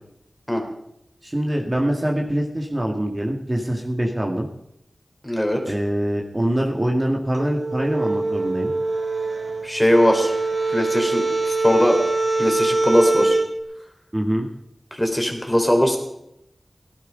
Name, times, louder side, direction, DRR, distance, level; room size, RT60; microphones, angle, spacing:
voice 1, 1.2-4.5 5.6-8.7 14.1-14.5, right 1 dB, 30° right, 0 dB, 2.1 m, -24 dB
voice 2, 5.2-5.6 9.6-10.3 10.7-12.0 12.4-13.4 14.9-16.0, equal, 10° left, 3 dB, 3.6 m, -20 dB
sound 1, 7.3-13.5, right 2 dB, 70° right, 3.7 m, -23 dB
18.0 x 12.0 x 5.2 m, 0.80 s
wide cardioid pair, 60°, 0 cm